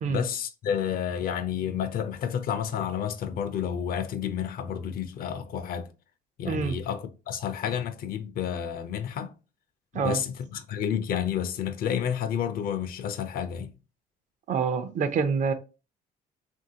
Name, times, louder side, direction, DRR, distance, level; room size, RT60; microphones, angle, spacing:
voice 1, 0.1-5.9 6.4-9.3 9.9-13.7, left 8 dB, 60° left, 0.5 m, -30 dB
voice 2, 6.5-6.8 9.9-10.2 14.5-15.5, right 5 dB, 45° right, 0.5 m, -26 dB
3.1 x 2.6 x 2.7 m
cardioid pair, 110°, 17 cm